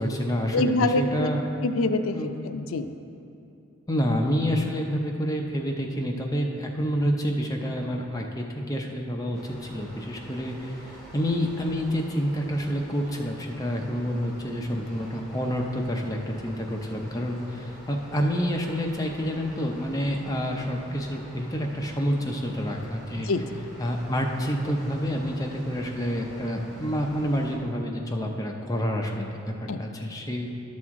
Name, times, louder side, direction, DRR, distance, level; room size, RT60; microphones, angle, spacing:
voice 1, 0.0-1.4 2.1-2.3 3.9-10.7 11.1-23.3 23.8-30.5, equal, 15° left, 1 dB, 0.5 m, -28 dB
voice 2, 0.5-1.3 1.6-2.9 23.2-23.6 29.7-30.1, left 2 dB, 75° left, 9 dB, 0.4 m, -26 dB
sound 1, 9.3-27.6, equal, ahead, 1.9 m, -46 dB
12.0 x 6.2 x 3.6 m, 2.7 s
head